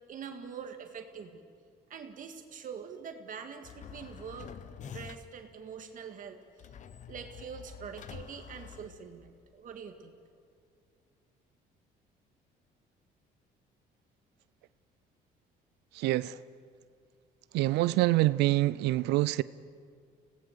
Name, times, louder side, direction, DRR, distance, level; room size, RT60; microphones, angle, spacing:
voice 1, 0.0-1.4 1.9-4.5 4.8-6.7 7.1-10.1, right 6 dB, 50° right, 1.9 m, -44 dB
sound 1, 3.6-5.5 6.6-9.4, left 8 dB, 45° left, 0.8 m, -47 dB
voice 2, 15.9-16.4 17.5-19.4, right 17 dB, 85° right, 0.5 m, -26 dB
25.5 x 18.0 x 6.8 m
cardioid pair, 110°, 17 cm